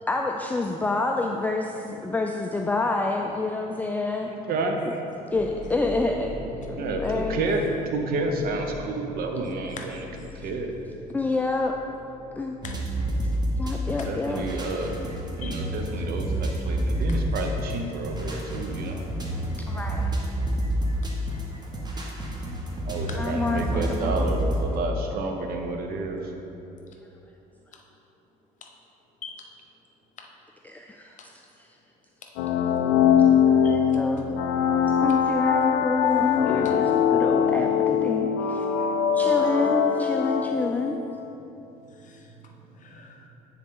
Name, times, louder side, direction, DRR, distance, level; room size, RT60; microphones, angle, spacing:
voice 1, 0.1-4.3 4.9-5.0 5.3-6.3 6.7-7.4 9.5-9.6 11.1-11.8 12.3-12.6 13.6-14.4 19.7-20.1 21.8-21.9 23.2-24.2 30.6-31.7 33.5-34.3 35.0-38.7 39.1-41.0, left 3 dB, 10° left, 2 dB, 0.3 m, -28 dB
voice 2, 4.3-4.8 6.8-7.6 7.9-10.0 10.4-10.7 14.0-15.0 15.4-19.0 22.9-26.3, right 3 dB, 65° right, 3 dB, 0.8 m, -30 dB
sound 1, 5.3-15.0, left 1 dB, 40° right, 1.5 m, -41 dB
sound 2, 12.6-24.6, right 1 dB, 25° right, 1.2 m, -29 dB
sound 3, 32.4-41.0, left 8 dB, 90° left, 0.4 m, -22 dB
voice 3, 41.9-42.3 42.8-43.3, left 6 dB, 50° left, 2 dB, 0.9 m, -43 dB
9.1 x 4.0 x 3.7 m, 2.9 s
supercardioid pair, 80°, 17 cm